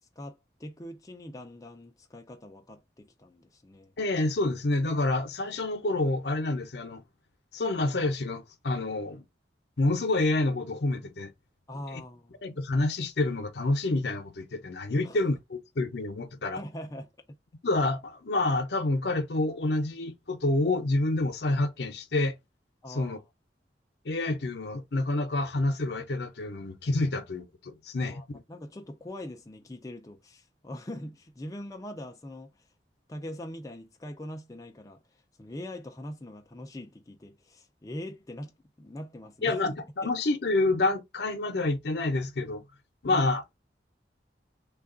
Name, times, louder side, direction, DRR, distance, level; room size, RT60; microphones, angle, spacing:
voice 1, 0.0-3.9 11.7-12.4 15.0-15.2 16.5-17.1 22.8-23.2 28.0-32.6 33.1-39.7 40.0-40.1 43.1-43.3, left 1 dB, 20° left, 0.4 m, -42 dB
voice 2, 4.0-7.0 7.5-9.2 9.8-11.3 11.9-12.0 12.4-16.6 17.6-22.4 22.9-23.2 24.0-28.4 39.4-42.6 43.0-43.4, left 2 dB, 65° left, 0.7 m, -28 dB
3.3 x 2.3 x 3.8 m
head